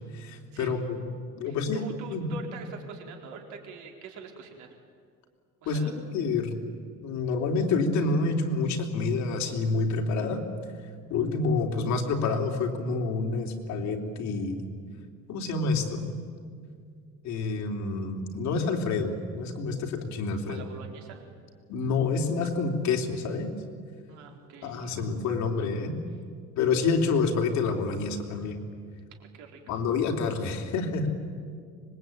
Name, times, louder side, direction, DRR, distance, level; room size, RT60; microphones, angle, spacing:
voice 1, 0.1-1.0 1.4-1.8 2.1-2.3 5.6-6.6 7.0-10.4 11.1-14.7 15.3-16.1 17.2-20.6 21.7-23.5 24.6-25.9 26.6-28.6 29.7-31.1, left 4 dB, 70° left, 2 dB, 3.2 m, -28 dB
voice 2, 1.5-4.8 5.6-5.9 20.4-21.3 24.1-25.1 29.2-29.8, right 6 dB, 80° right, 2 dB, 4.2 m, -45 dB
25.0 x 21.5 x 9.2 m, 2.1 s
cardioid pair, 150°, 29 cm